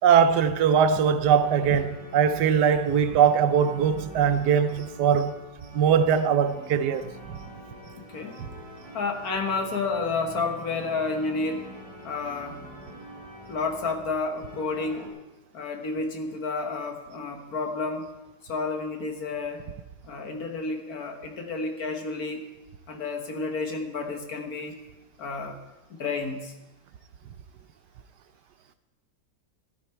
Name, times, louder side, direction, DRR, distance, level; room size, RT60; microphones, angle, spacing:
voice 1, 0.0-5.4 5.7-7.4, right 7 dB, 80° right, 1.3 m, -21 dB
sound 1, 1.2-15.1, equal, 20° right, 3.3 m, -45 dB
voice 2, 8.0-8.4 8.9-11.7 12.0-12.6 13.5-15.1 15.5-18.1 18.4-19.6 20.0-22.4 22.9-24.8 25.2-25.6 25.9-26.5, left 3 dB, 65° left, 1.8 m, -30 dB
14.0 x 12.5 x 4.4 m
omnidirectional pair, 1.8 m